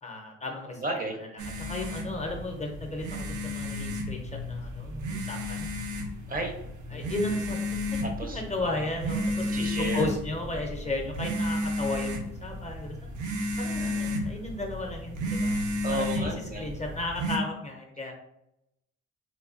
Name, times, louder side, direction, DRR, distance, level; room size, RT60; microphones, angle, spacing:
voice 1, 0.0-0.8 1.6-5.7 6.9-8.0 8.3-13.0 13.6-15.5 15.9-18.1, left 2 dB, 25° left, 2 dB, 0.5 m, -34 dB
voice 2, 0.8-1.2 6.3-6.5 6.9-7.4 8.0-8.4 9.4-10.1 13.6-14.3 15.8-16.8, right 2 dB, 30° right, 3 dB, 0.5 m, -34 dB
sound 1, 1.4-17.4, left 1 dB, 75° right, 0.5 m, -32 dB
3.0 x 2.2 x 2.4 m, 0.83 s
cardioid pair, 90°, 30 cm